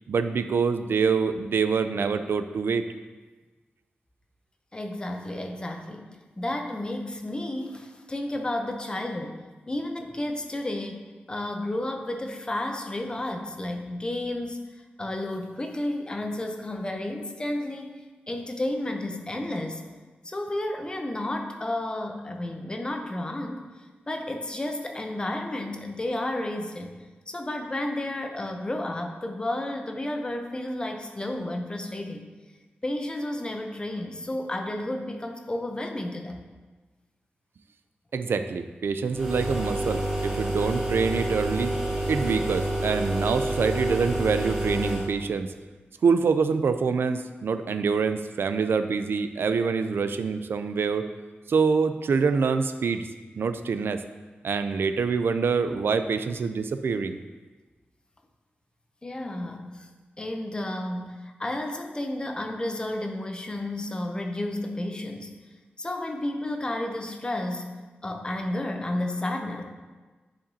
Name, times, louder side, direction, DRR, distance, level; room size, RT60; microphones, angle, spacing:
voice 1, 0.1-2.8 38.1-41.7 42.1-45.5 46.0-51.0 51.5-53.1 53.4-54.0 54.4-57.2, right 5 dB, 80° right, 9 dB, 0.4 m, -25 dB
voice 2, 4.7-9.4 9.7-14.6 15.0-18.0 18.3-19.8 20.2-23.7 24.1-27.0 27.3-32.3 32.8-36.4 59.0-59.9 60.2-65.4 65.8-69.6, left 1 dB, 25° left, 4 dB, 0.6 m, -32 dB
sound 1, 39.1-45.1, right 1 dB, 5° right, 1.9 m, -28 dB
10.0 x 5.0 x 2.7 m, 1.3 s
wide cardioid pair, 140°, 4 cm